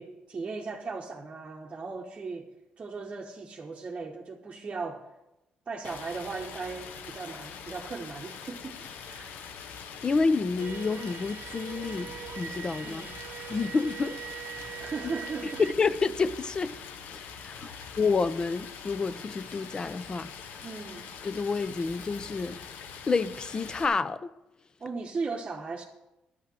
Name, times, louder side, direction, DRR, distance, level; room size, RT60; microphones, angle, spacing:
voice 1, 0.0-2.5 2.8-5.0 5.7-8.8 9.1-9.4 12.8-13.1 14.8-15.6 17.6-17.9 20.6-21.1 24.8-25.8, right 4 dB, 30° right, -2 dB, 1.0 m, -37 dB
Stream, 5.8-23.9, left 6 dB, 85° left, 0.8 m, -44 dB
voice 2, 10.0-13.0 13.5-14.2 14.5-14.6 15.6-16.7 17.4-20.3 21.2-22.6 23.1-24.3, left 4 dB, 30° left, 15 dB, 0.5 m, -29 dB
sound 1, 10.6-15.7, right 10 dB, 70° right, 0.4 m, -42 dB
11.5 x 5.8 x 7.5 m, 0.95 s
cardioid pair, 120°, 3 cm